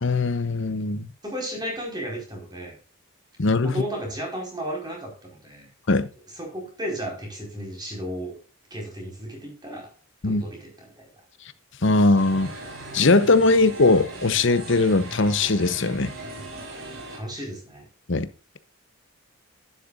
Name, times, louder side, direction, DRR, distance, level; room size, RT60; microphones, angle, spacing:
voice 1, 0.0-1.1 3.4-3.7 5.9-6.1 10.2-10.4 11.8-12.5 12.9-16.1 18.1-18.3, left 3 dB, 55° left, 0.9 m, -20 dB
voice 2, 1.2-2.7 3.6-5.7 6.3-8.4 8.7-9.9 10.2-11.1 17.1-17.9, equal, 20° right, 4.6 m, -34 dB
sound 1, 12.1-17.2, right 2 dB, 65° right, 4.3 m, -39 dB
11.5 x 10.0 x 2.5 m
head